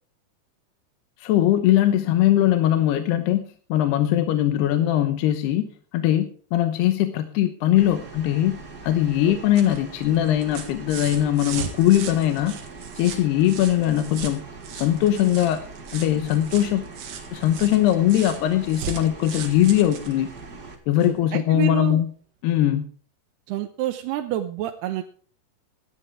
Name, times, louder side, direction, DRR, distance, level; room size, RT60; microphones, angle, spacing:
voice 1, 1.2-3.4 3.7-8.6 8.8-12.6 13.0-14.4 14.7-15.6 15.9-16.8 17.3-20.3 20.9-22.1 22.4-22.9, left 12 dB, 80° left, 8 dB, 3.0 m, -21 dB
sound 1, 7.8-20.8, right 3 dB, 50° right, 1.2 m, -42 dB
sound 2, 9.2-21.2 22.5-22.6, right 7 dB, 65° right, 3.4 m, -38 dB
voice 2, 21.1-22.0 23.5-25.0, right 13 dB, 80° right, 6 dB, 2.7 m, -28 dB
17.0 x 12.5 x 3.5 m, 0.43 s
omnidirectional pair, 4.8 m